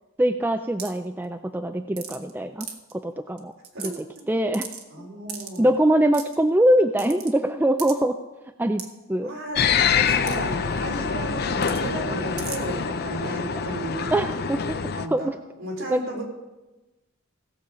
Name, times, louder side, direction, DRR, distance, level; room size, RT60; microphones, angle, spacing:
voice 1, 0.2-2.7 2.9-3.5 3.8-3.9 4.3-4.7 5.0-5.1 5.6-8.2 8.6-9.3 14.1-14.6 15.1-15.4 15.9-16.0, right 1 dB, 10° right, 7 dB, 0.3 m, -23 dB
sound 1, 0.8-1.0 2.0-2.3 2.6-2.9 3.4-3.5 3.6-4.2 4.5-4.8 5.3-5.6 6.1-6.4 7.0-7.3 7.8-7.9 8.8-8.9 10.3-10.4 10.6-10.7 11.6-11.8 12.4-12.6, right 8 dB, 85° right, 1.3 m, -36 dB
voice 2, 4.9-5.7 9.2-14.5 14.9-15.3 15.6-16.2, right 1 dB, 60° right, -3 dB, 4.1 m, -34 dB
sound 2, 9.6-15.1, left 6 dB, 45° left, 0.5 m, -25 dB
17.0 x 7.1 x 5.0 m, 1.1 s
head